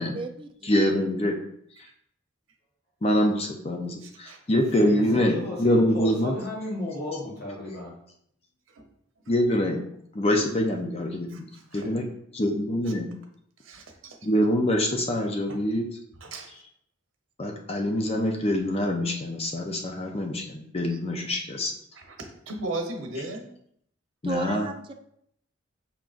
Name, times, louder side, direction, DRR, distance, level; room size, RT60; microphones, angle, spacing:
voice 1, 0.0-0.7 20.9-21.0 24.2-24.9, right 2 dB, 25° right, 4 dB, 0.4 m, -33 dB
voice 2, 0.6-1.4 3.0-6.3 9.3-9.8 10.1-12.0 12.4-13.1 14.2-15.8 17.4-21.7 24.2-24.7, left 1 dB, 30° left, 2 dB, 0.5 m, -25 dB
voice 3, 4.0-4.4 8.7-8.9 9.3-9.4 11.3-11.8 13.6-14.2 15.5-15.6 16.2-16.5 21.9-22.2 22.5-23.5, right 2 dB, 80° right, 3 dB, 0.9 m, -36 dB
voice 4, 4.8-7.9 11.8-12.1, left 2 dB, 50° left, -4 dB, 1.1 m, -34 dB
5.7 x 3.8 x 2.5 m, 0.69 s
head